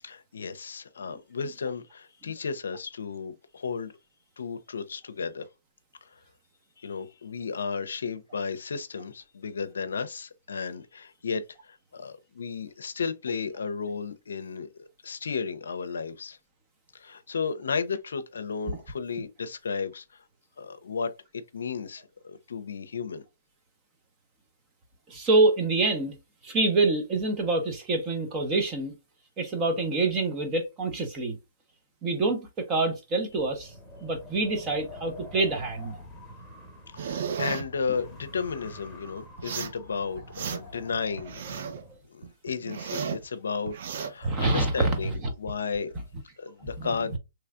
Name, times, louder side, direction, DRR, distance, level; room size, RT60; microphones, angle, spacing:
voice 1, 0.0-3.9 4.4-5.5 6.1-6.2 6.8-16.4 16.9-20.0 20.6-21.1 21.5-23.2 37.0-41.5 42.1-45.9 46.4-47.2, left 5 dB, 80° left, 0.5 m, -34 dB
voice 2, 25.1-26.2 26.4-28.9 29.4-31.4 32.0-33.7 34.0-35.9 44.2-45.3 46.8-46.9, right 3 dB, 25° right, 0.8 m, -26 dB
Wind, 33.3-42.0, left 1 dB, 5° left, 1.0 m, -46 dB
sound 1, 37.0-37.6 39.4-39.8 40.2-40.8 41.2-41.8 42.2-43.2 43.7-44.1, right 7 dB, 55° right, 0.6 m, -34 dB
3.3 x 3.0 x 2.4 m
hypercardioid pair, 140°, 0 cm